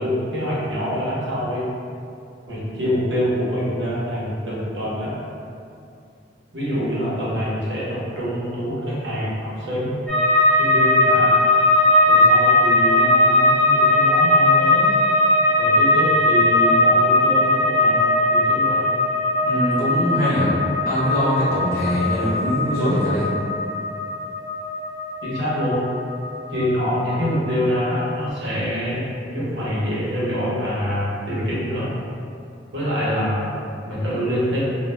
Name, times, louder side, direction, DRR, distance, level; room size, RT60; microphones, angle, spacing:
voice 1, 0.0-1.6 2.5-5.1 6.5-9.9 10.6-11.4 12.1-14.8 15.6-18.8 25.2-25.8 26.5-31.9 32.7-33.5 33.9-34.6, equal, 75° right, -8 dB, 0.8 m, -25 dB
sound 1, 10.1-27.2 27.5-28.2, left 2 dB, 5° left, 0.7 m, -19 dB
voice 2, 19.4-20.6 20.9-23.3, equal, 55° left, -10 dB, 0.8 m, -22 dB
2.2 x 2.2 x 3.1 m, 2.5 s
head